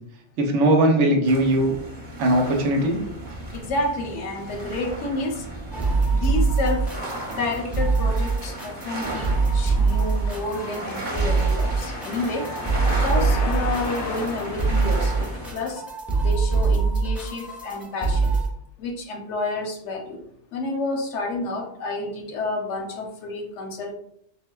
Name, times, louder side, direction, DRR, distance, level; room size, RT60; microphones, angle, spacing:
voice 1, 0.4-1.7 2.2-3.0, right 1 dB, 85° right, 3 dB, 1.0 m, -19 dB
sound 1, 1.2-15.5, right 1 dB, 45° right, 0.8 m, -36 dB
voice 2, 3.5-5.5 6.1-6.9 7.3-12.5 13.0-15.8 16.2-18.4 18.8-20.2 20.5-23.9, left 2 dB, 85° left, 2 dB, 1.0 m, -30 dB
sound 2, 5.7-18.5, right 4 dB, ahead, 0.5 m, -23 dB
sound 3, 6.7-15.7, left 3 dB, 55° left, 0.7 m, -36 dB
4.0 x 2.1 x 2.2 m, 0.72 s
omnidirectional pair, 1.2 m